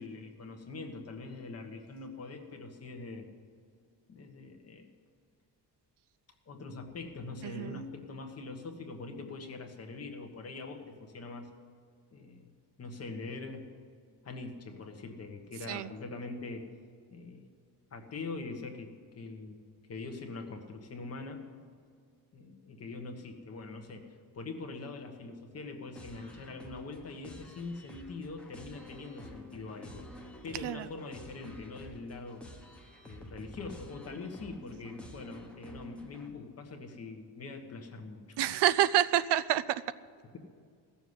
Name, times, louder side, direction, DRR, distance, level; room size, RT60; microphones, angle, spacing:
voice 1, 0.0-3.3 4.1-4.9 6.5-11.5 12.1-12.5 12.8-13.7 14.2-16.7 17.1-17.5 17.9-19.6 19.9-21.5 22.3-30.1 30.4-32.5 33.0-38.4 40.2-40.4, left 3 dB, 35° left, 5 dB, 1.3 m, -43 dB
voice 2, 7.4-7.8 15.7-15.9 30.6-30.8 38.4-39.8, right 12 dB, 70° right, 15 dB, 0.5 m, -27 dB
sound 1, 26.0-36.3, equal, 5° left, 1.2 m, -50 dB
16.0 x 7.1 x 9.6 m, 2.2 s
cardioid pair, 175°, 43 cm